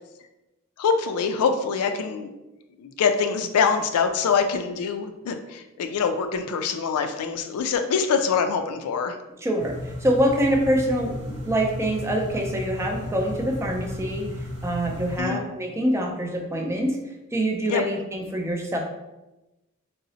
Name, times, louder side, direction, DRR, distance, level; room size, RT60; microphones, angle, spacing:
voice 1, 0.8-2.3 2.8-9.2 15.2-15.4 17.7-17.8, left 6 dB, 85° left, 7 dB, 0.3 m, -24 dB
voice 2, 9.4-14.3 14.6-17.0 17.3-18.8, equal, 10° right, 1 dB, 0.3 m, -25 dB
sound 1, 9.6-15.2, left 1 dB, 55° right, 0.6 m, -34 dB
3.8 x 2.0 x 2.7 m, 1.0 s
head